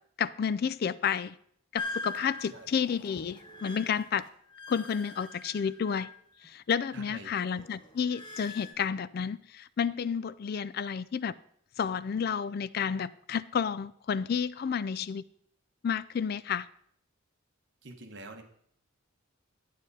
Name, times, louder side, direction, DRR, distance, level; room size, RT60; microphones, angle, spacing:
voice 1, 0.2-1.4 1.7-4.3 4.7-6.1 6.4-11.3 11.8-15.2 15.8-16.7, left 7 dB, 45° left, 17 dB, 0.3 m, -31 dB
sound 1, 1.8-6.5 6.8-8.7, left 3 dB, 20° left, 1.3 m, -43 dB
voice 2, 6.9-7.3 17.8-18.4, right 2 dB, 55° right, 4 dB, 1.2 m, -45 dB
11.0 x 9.3 x 4.1 m, 0.66 s
head